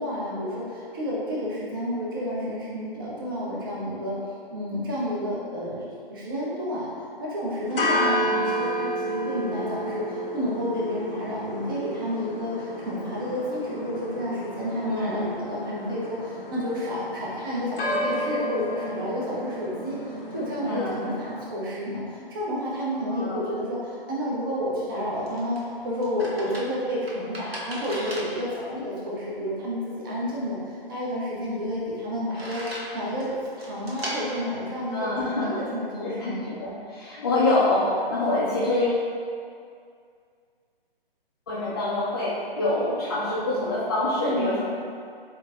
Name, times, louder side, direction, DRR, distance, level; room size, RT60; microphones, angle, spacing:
voice 1, 0.0-4.2 4.5-32.7 32.9-33.3 33.6-36.5 44.2-44.6, equal, 20° right, -6 dB, 0.7 m, -30 dB
sound 1, 7.7-21.5, equal, 65° left, 0.7 m, -31 dB
voice 2, 14.8-15.3 20.6-21.0 23.1-23.4 28.7-28.8 34.9-35.6 36.0-39.1 41.5-44.6, left 2 dB, 25° left, -10 dB, 0.5 m, -26 dB
sound 2, 24.8-35.7, right 1 dB, 80° right, 0.9 m, -40 dB
7.5 x 2.7 x 2.2 m, 2.3 s
figure-of-eight pair, 135°, 30 cm